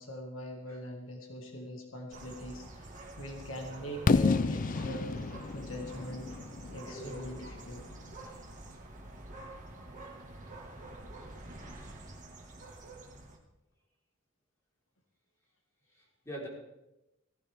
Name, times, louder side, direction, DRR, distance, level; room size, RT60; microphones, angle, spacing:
voice 1, 0.0-6.4 6.7-7.9, equal, 75° left, 1 dB, 2.0 m, -42 dB
sound 1, 2.1-13.4, right 2 dB, 40° right, 2.0 m, -47 dB
Fireworks, 4.1-7.9, left 4 dB, 40° left, 0.4 m, -30 dB
voice 2, 6.9-7.4 15.9-16.5, equal, 15° left, -4 dB, 4.3 m, -44 dB
17.5 x 15.0 x 3.6 m, 0.96 s
head